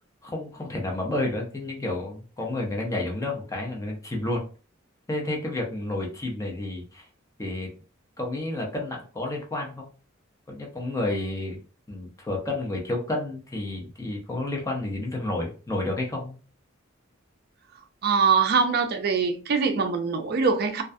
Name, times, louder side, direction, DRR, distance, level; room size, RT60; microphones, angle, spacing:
voice 1, 0.2-4.4 5.1-7.1 7.4-7.7 8.2-9.9 10.5-11.6 11.9-16.4, left 2 dB, 15° left, 0.6 m, -30 dB
voice 2, 18.0-20.8, right 5 dB, 50° right, 0.4 m, -23 dB
2.3 x 2.2 x 2.5 m
head